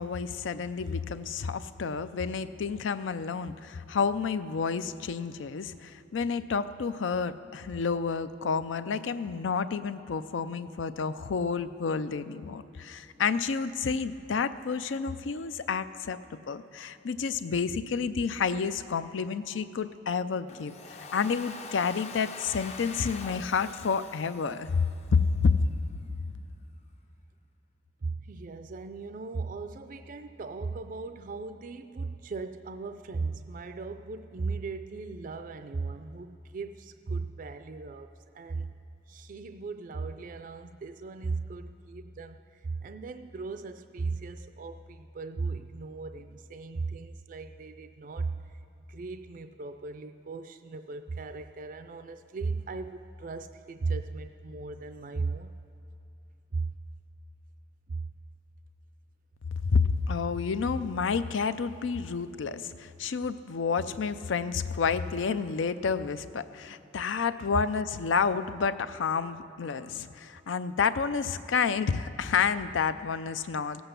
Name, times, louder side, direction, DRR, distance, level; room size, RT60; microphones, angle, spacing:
voice 1, 0.0-16.2 16.5-25.6 59.6-73.9, left 5 dB, 85° left, 13 dB, 0.5 m, -30 dB
Domestic sounds home sounds, 20.5-25.4, left 4 dB, 35° left, 0.5 m, -44 dB
voice 2, 28.0-38.1 38.3-38.7 39.1-48.4 48.9-55.5 56.5-56.7 57.9-58.1, right 4 dB, 45° right, 9 dB, 0.4 m, -37 dB
16.5 x 7.9 x 6.7 m, 2.9 s
head